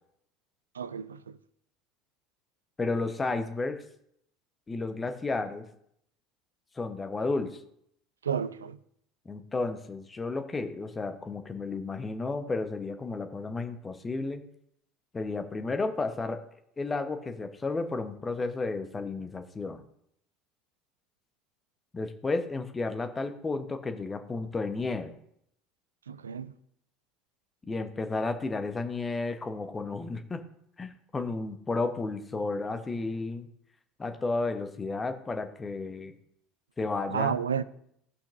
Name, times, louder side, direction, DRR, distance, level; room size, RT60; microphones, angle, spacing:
voice 1, 0.7-1.4 8.2-8.8 26.1-26.5 37.1-37.6, right 7 dB, 80° right, 0.4 m, -31 dB
voice 2, 2.8-3.8 4.7-5.6 6.7-7.6 9.2-14.4 15.1-16.4 16.8-19.8 21.9-25.1 27.7-30.4 30.8-33.5 34.0-36.1 36.8-37.4, left 3 dB, 20° left, 0.9 m, -32 dB
14.0 x 5.8 x 2.6 m
figure-of-eight pair, 65°, 0 cm